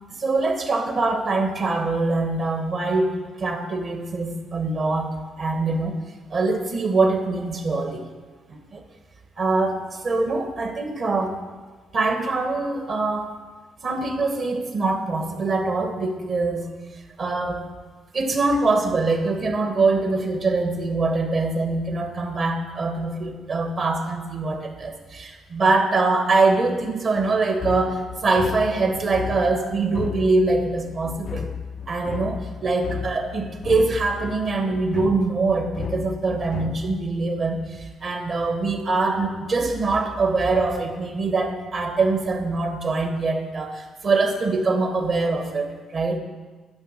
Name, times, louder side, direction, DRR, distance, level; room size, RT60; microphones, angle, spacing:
voice 1, 0.2-6.0 6.3-8.0 8.5-8.8 9.4-11.4 11.9-13.3 13.8-16.7 17.2-17.6 18.1-31.5 31.9-46.2, right 3 dB, 55° right, 4 dB, 1.4 m, -23 dB
sound 1, 27.6-37.1, left 6 dB, 50° left, 0.3 m, -34 dB
10.5 x 5.3 x 6.5 m, 1.3 s
cardioid pair, 90°, 0 cm